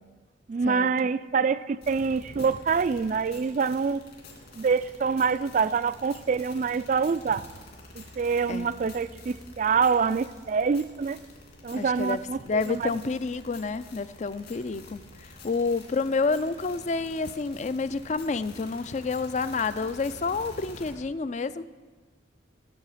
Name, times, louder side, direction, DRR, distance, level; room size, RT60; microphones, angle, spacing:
voice 1, 0.5-4.0 4.6-7.4 8.0-11.2 11.6-12.9, right 5 dB, 45° right, 15 dB, 0.3 m, -26 dB
sound 1, 1.8-20.9, left 2 dB, 55° left, 2.9 m, -48 dB
voice 2, 11.7-12.2 12.5-21.6, left 4 dB, 40° left, 14 dB, 0.4 m, -29 dB
15.5 x 7.5 x 5.7 m, 1.4 s
head